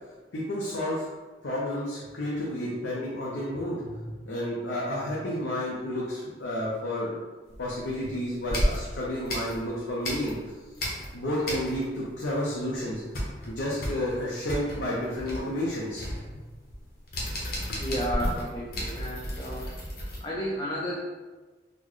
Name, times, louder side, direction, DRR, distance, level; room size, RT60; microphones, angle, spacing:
voice 1, 0.3-1.1 1.4-7.2 7.6-10.3 11.1-13.0 13.5-16.1 16.3-16.4, left 1 dB, 85° left, -5 dB, 0.6 m, -31 dB
sound 1, 7.5-8.0 8.5-10.5 10.7-12.1 12.3-12.4 12.7-20.2, equal, 55° left, 0.8 m, -33 dB
voice 2, 17.8-19.7 20.2-21.0, equal, 25° left, -5 dB, 0.4 m, -32 dB
4.2 x 2.1 x 3.0 m, 1.3 s
head